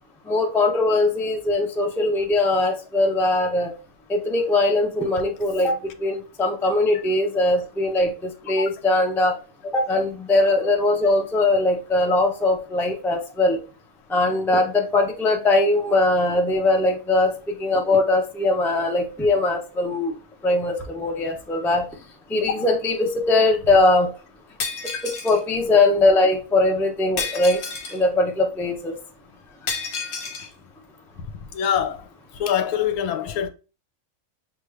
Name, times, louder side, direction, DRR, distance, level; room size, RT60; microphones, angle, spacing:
voice 1, 0.3-3.7 4.1-9.4 9.7-13.6 14.1-17.3 17.6-20.1 20.4-21.8 22.3-24.1 25.0-27.6 27.9-28.9, left 2 dB, 5° left, 0.3 m, -21 dB
Shatter, 24.6-25.4 27.2-28.0 29.7-30.5, left 5 dB, 55° left, 0.9 m, -30 dB
voice 2, 31.5-32.1 32.3-33.5, left 9 dB, 80° left, 1.1 m, -24 dB
6.6 x 2.4 x 3.2 m
omnidirectional pair, 1.5 m